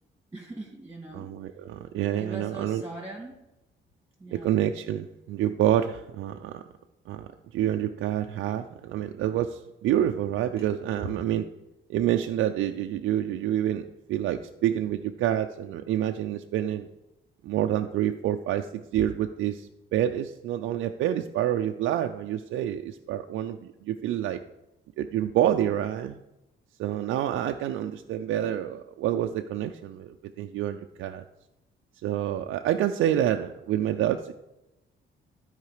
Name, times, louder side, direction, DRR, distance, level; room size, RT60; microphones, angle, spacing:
voice 1, 0.3-1.3 2.2-3.4 4.2-4.6 10.6-10.7 11.0-11.1, right 2 dB, 10° right, -1 dB, 2.3 m, -40 dB
voice 2, 1.1-2.8 4.3-6.6 7.1-11.5 11.9-16.9 17.4-24.4 25.0-26.2 26.8-31.2 32.0-34.3, right 11 dB, 80° right, 5 dB, 0.5 m, -28 dB
12.5 x 4.8 x 4.9 m, 0.94 s
cardioid pair, 90°, 20 cm